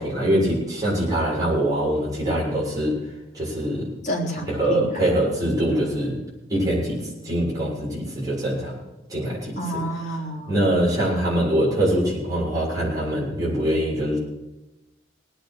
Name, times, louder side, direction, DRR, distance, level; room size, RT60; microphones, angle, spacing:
voice 1, 0.0-3.0 3.3-3.9 4.5-6.2 6.5-7.0 7.2-8.8 9.1-9.6 10.5-14.2, right 1 dB, 20° right, -6 dB, 7.0 m, -23 dB
voice 2, 4.0-5.2 9.6-10.7, equal, 40° left, -1 dB, 3.4 m, -29 dB
19.5 x 8.9 x 6.5 m, 1.0 s
head